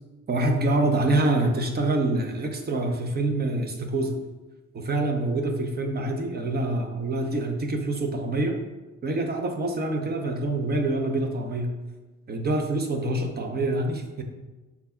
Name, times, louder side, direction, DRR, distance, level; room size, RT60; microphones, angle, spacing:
voice 1, 0.3-4.2 4.7-8.6 9.0-11.7 12.3-14.2, right 2 dB, 35° right, 4 dB, 0.6 m, -26 dB
5.8 x 3.9 x 2.2 m, 1.2 s
cardioid pair, 90°, 30 cm